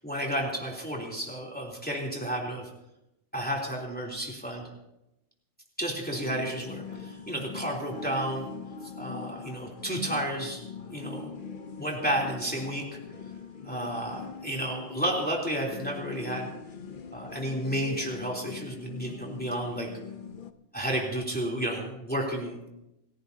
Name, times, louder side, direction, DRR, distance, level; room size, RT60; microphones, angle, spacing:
voice 1, 0.0-2.7 3.3-4.7 5.8-8.5 9.0-10.6 10.9-11.3 11.8-13.0 13.6-16.5 17.1-19.9 20.7-22.7, right 1 dB, 5° left, -2 dB, 3.3 m, -32 dB
sound 1, 6.1-20.5, left 5 dB, 45° left, 0.9 m, -42 dB
29.5 x 14.5 x 2.8 m, 0.89 s
omnidirectional pair, 1.3 m